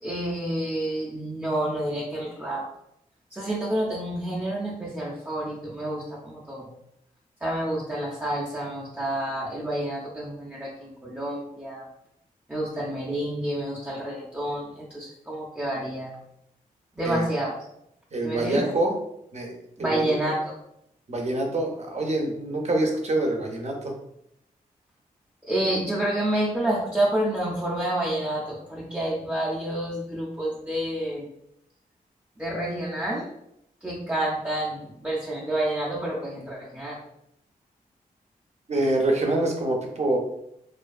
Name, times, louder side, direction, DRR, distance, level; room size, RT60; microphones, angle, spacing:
voice 1, 0.0-2.7 3.3-6.7 7.4-11.9 12.5-16.1 17.0-17.6 18.2-18.7 19.8-20.4 25.4-31.3 32.4-33.3 33.8-37.0, right 1 dB, 10° right, -7 dB, 0.6 m, -29 dB
voice 2, 18.1-18.9 19.3-20.1 21.1-23.9 38.7-40.2, right 2 dB, 45° right, 1 dB, 0.7 m, -26 dB
2.5 x 2.3 x 2.3 m, 0.78 s
cardioid pair, 50°, 16 cm